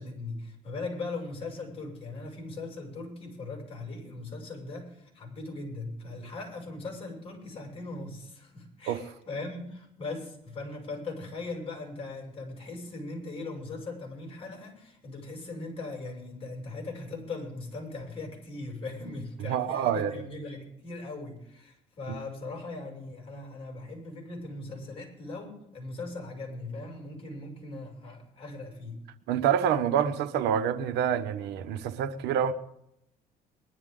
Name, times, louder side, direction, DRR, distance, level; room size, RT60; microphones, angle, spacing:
voice 1, 0.0-29.0, left 2 dB, 35° left, 6.8 m, -39 dB
voice 2, 19.5-20.1 22.1-22.2 29.3-32.5, right 9 dB, 85° right, 1.2 m, -27 dB
21.5 x 11.5 x 3.9 m
cardioid pair, 110°, 17 cm